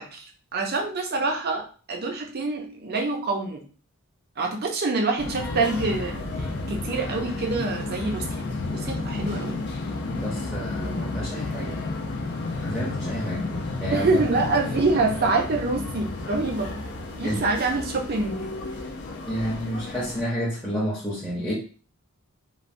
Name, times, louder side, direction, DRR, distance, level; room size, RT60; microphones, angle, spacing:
voice 1, 0.0-3.6 4.4-8.4 8.7-9.6 13.9-16.8 17.1-18.5, right 3 dB, 45° right, 2 dB, 0.5 m, -26 dB
sound 1, 5.2-20.2, left 2 dB, 50° left, 0.4 m, -32 dB
voice 2, 10.0-11.8 12.6-13.5 13.8-14.2 17.2-17.4 19.3-21.5, equal, ahead, -7 dB, 0.6 m, -30 dB
3.1 x 2.1 x 2.5 m, 0.39 s
head